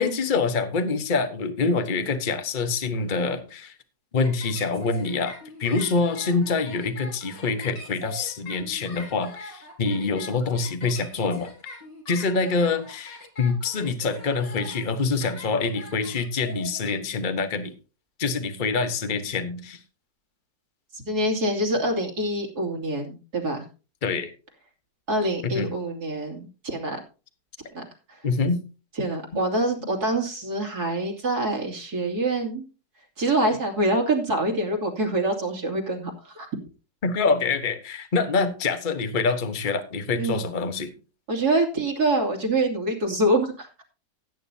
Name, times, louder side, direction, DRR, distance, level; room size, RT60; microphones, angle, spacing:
voice 1, 0.0-3.7 4.1-11.5 12.1-17.7 18.2-19.8 24.0-24.3 25.5-25.7 28.2-28.6 37.0-40.9, left 4 dB, 30° left, 8 dB, 1.2 m, -25 dB
sound 1, 4.2-16.9, left 2 dB, 85° left, 5.1 m, -42 dB
voice 2, 20.9-23.6 25.1-27.0 27.7-27.8 28.1-28.2 29.0-32.6 33.2-36.5 40.1-40.5 41.3-43.7, right 1 dB, 60° right, 1 dB, 3.2 m, -25 dB
17.0 x 9.2 x 2.8 m, 0.34 s
omnidirectional pair, 1.9 m